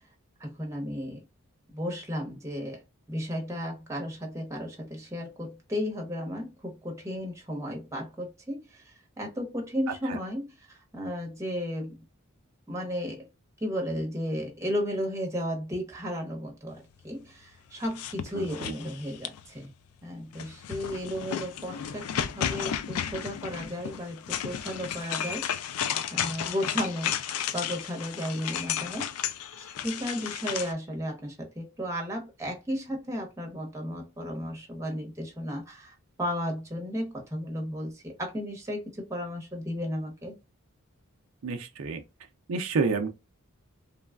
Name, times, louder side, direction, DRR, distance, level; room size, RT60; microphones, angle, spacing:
voice 1, 0.4-1.2 1.7-2.8 3.1-12.0 12.7-13.3 13.6-19.7 20.0-25.5 26.1-27.2 27.5-29.1 29.6-40.4, equal, 15° right, 0.8 m, -34 dB
sound 1, 17.8-19.6 20.3-30.7, left 9 dB, 85° left, 0.4 m, -33 dB
voice 2, 18.3-18.7 41.4-42.0 42.5-43.1, right 4 dB, 70° right, 0.4 m, -29 dB
3.2 x 2.2 x 2.3 m
head